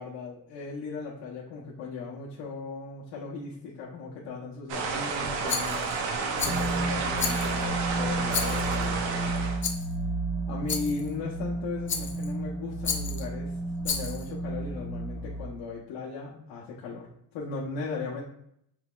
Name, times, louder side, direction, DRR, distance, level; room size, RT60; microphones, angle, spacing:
voice 1, 0.0-5.9 6.3-9.5 10.5-13.6 13.8-18.2, left 4 dB, 75° left, -4 dB, 1.1 m, -37 dB
sound 1, 4.7-9.6, right 4 dB, 90° right, 0.9 m, -30 dB
Rattle, 5.5-6.0 6.4-6.8 7.2-7.7 8.3-8.9 9.6-9.9 10.7-11.1 11.9-12.3 12.8-13.3 13.8-14.3, left 6 dB, 30° left, 0.6 m, -32 dB
sound 2, 6.4-15.5, right 2 dB, 10° right, 0.7 m, -32 dB
5.9 x 3.4 x 2.4 m, 0.73 s
cardioid pair, 150°, 44 cm